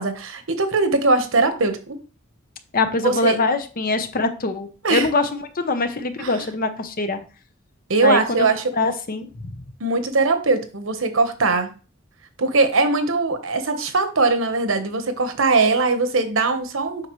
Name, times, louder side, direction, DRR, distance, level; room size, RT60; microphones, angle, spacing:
voice 1, 0.0-2.0 3.0-3.4 4.8-5.1 6.2-6.3 7.9-8.6 9.8-11.7 12.4-17.1, right 3 dB, 75° right, 8 dB, 1.1 m, -20 dB
voice 2, 2.7-7.2 8.0-8.5 8.7-9.6, left 3 dB, 45° left, 9 dB, 0.9 m, -23 dB
7.8 x 5.5 x 3.1 m, 0.35 s
head